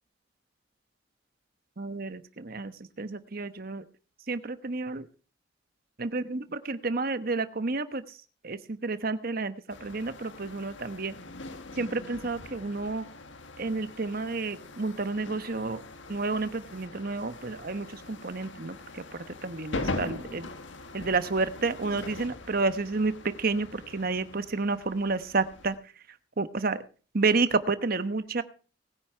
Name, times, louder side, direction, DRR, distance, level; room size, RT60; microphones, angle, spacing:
voice 1, 1.8-3.8 4.3-5.1 6.0-8.2 8.4-11.1 11.8-13.1 13.6-15.8 16.1-20.5 20.9-25.7 26.4-26.8 27.1-28.4, right 3 dB, 50° right, 12 dB, 1.1 m, -30 dB
sound 1, 9.7-25.8, left 2 dB, 85° left, 1.6 m, -42 dB
20.0 x 9.7 x 4.5 m, 0.38 s
head